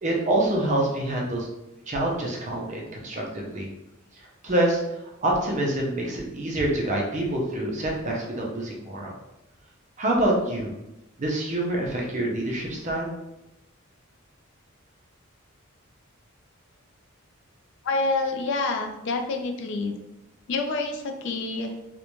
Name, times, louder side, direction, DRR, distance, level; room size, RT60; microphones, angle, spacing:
voice 1, 0.0-1.5 1.9-3.7 4.4-9.1 10.0-10.7 11.2-13.1, right 1 dB, 35° right, -1 dB, 0.5 m, -26 dB
voice 2, 17.8-19.9 20.5-21.8, left 3 dB, 60° left, 4 dB, 0.3 m, -27 dB
2.5 x 2.1 x 2.9 m, 0.93 s
head